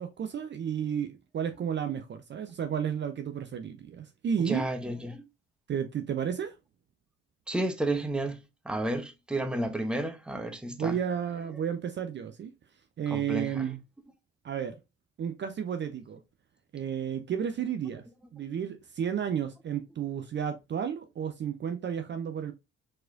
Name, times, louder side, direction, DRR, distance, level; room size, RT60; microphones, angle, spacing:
voice 1, 0.0-4.6 5.7-6.6 10.7-12.5 13.0-13.8 14.4-14.8 15.2-16.2 16.7-18.1 18.3-22.5, right 8 dB, 35° right, 0.6 m, -32 dB
voice 2, 4.5-5.3 7.5-11.0 13.1-13.7, right 1 dB, 5° right, 0.8 m, -32 dB
4.3 x 4.2 x 2.6 m
figure-of-eight pair, 50°, 33 cm